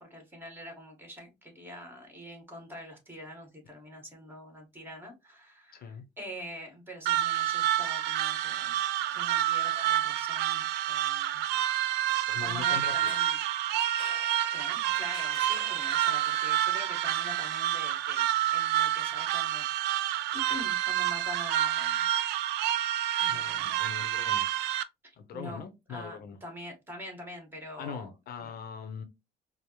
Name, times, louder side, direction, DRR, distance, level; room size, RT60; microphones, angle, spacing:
voice 1, 0.0-8.8 9.1-11.4 12.4-13.4 14.5-19.8 20.3-22.1 23.2-23.8 25.0-28.1 28.4-28.5, equal, 10° right, 1.6 m, -45 dB
voice 2, 5.7-6.0 12.3-13.2 23.3-24.6 25.2-26.4 27.8-29.0, left 6 dB, 60° left, 0.6 m, -41 dB
sound 1, 7.1-24.8, right 12 dB, 85° right, 0.4 m, -28 dB
sound 2, 12.9-16.8, left 3 dB, 30° left, 0.9 m, -49 dB
4.6 x 2.0 x 2.9 m
cardioid pair, 110°, 17 cm